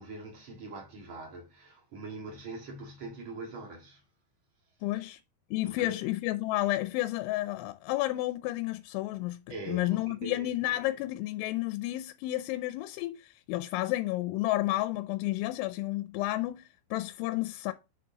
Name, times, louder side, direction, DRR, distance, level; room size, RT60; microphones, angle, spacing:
voice 1, 0.0-4.0 5.6-6.0 9.5-10.7, right 2 dB, 65° right, 1.2 m, -43 dB
voice 2, 4.8-5.2 5.5-9.4 9.7-17.7, left 17 dB, 85° left, 2.9 m, -31 dB
7.9 x 6.5 x 2.8 m
omnidirectional pair, 5.5 m